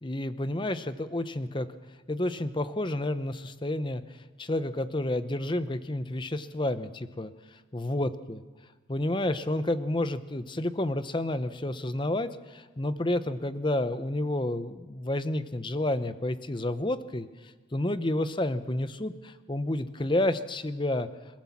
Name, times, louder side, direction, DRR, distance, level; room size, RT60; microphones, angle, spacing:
voice 1, 0.0-1.7 2.1-4.0 4.4-7.3 7.7-8.4 8.9-17.3 17.7-21.1, left 1 dB, 25° left, 12 dB, 0.8 m, -30 dB
27.5 x 15.0 x 7.2 m, 1.3 s
head